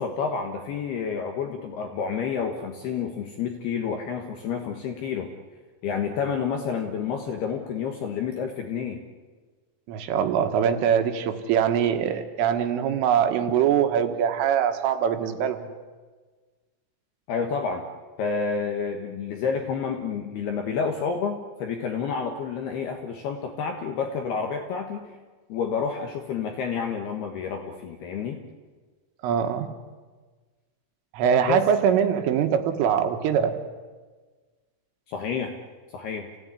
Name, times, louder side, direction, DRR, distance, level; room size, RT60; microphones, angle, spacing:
voice 1, 0.0-5.3 5.8-9.0 17.3-17.8 18.2-25.1 25.5-28.4 31.5-31.6 35.1-35.5 35.9-36.3, left 6 dB, 65° left, 4 dB, 2.9 m, -29 dB
voice 2, 9.9-15.7 29.2-29.7 31.1-33.6, right 8 dB, 80° right, 7 dB, 4.0 m, -23 dB
29.0 x 17.0 x 9.9 m, 1.4 s
omnidirectional pair, 5.9 m